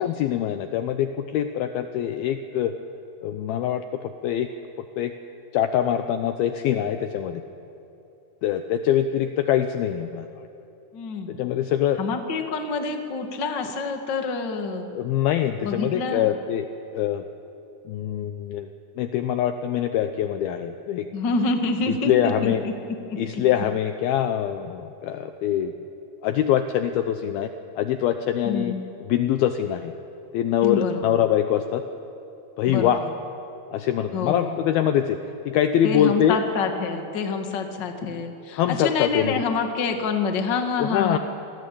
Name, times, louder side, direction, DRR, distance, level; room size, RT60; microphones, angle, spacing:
voice 1, 0.0-2.7 3.2-4.5 5.0-5.1 5.5-7.4 8.4-10.3 11.3-12.0 14.9-16.7 16.9-17.2 17.9-18.7 19.0-21.1 21.9-22.6 23.2-25.7 26.2-27.5 27.8-28.7 29.0-29.9 30.3-31.8 32.6-33.1 33.7-35.2 35.5-36.4 38.5-39.3 40.8-41.2, left 10 dB, 75° left, 8 dB, 2.3 m, -24 dB
voice 2, 10.9-11.3 12.0-14.9 15.6-16.3 21.1-22.7 23.1-23.2 28.4-28.8 30.6-31.2 32.6-32.9 34.1-34.6 35.8-41.2, left 4 dB, 40° left, 5 dB, 1.6 m, -27 dB
27.5 x 20.0 x 8.6 m, 2.9 s
omnidirectional pair, 5.0 m